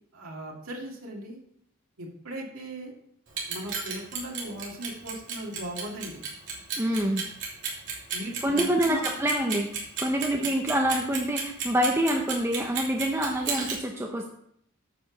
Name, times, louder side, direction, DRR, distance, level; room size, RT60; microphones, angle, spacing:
voice 1, 0.1-1.4 2.0-2.9 3.5-6.2 8.1-9.0 10.4-10.5, right 1 dB, 80° right, -1 dB, 2.3 m, -38 dB
Clock, 3.3-13.8, right 6 dB, 60° right, 3.3 m, -32 dB
voice 2, 6.8-7.2 8.4-14.2, right 1 dB, 10° right, 1 dB, 0.8 m, -26 dB
9.4 x 5.1 x 7.1 m, 0.70 s
head